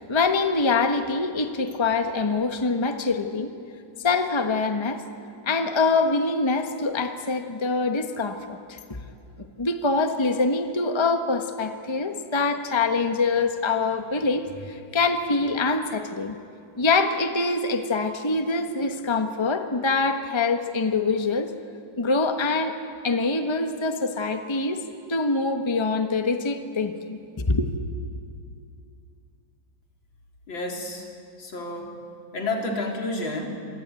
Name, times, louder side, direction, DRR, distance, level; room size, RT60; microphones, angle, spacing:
voice 1, 0.0-3.5 4.0-5.0 5.4-9.0 9.6-16.3 16.8-21.5 22.0-22.7 23.0-24.8 25.1-27.7, left 3 dB, 15° left, 6 dB, 1.2 m, -24 dB
voice 2, 30.5-31.1 31.4-32.0 32.3-33.5, left 2 dB, 80° left, 1 dB, 4.2 m, -30 dB
26.5 x 25.0 x 9.1 m, 2.4 s
omnidirectional pair, 2.1 m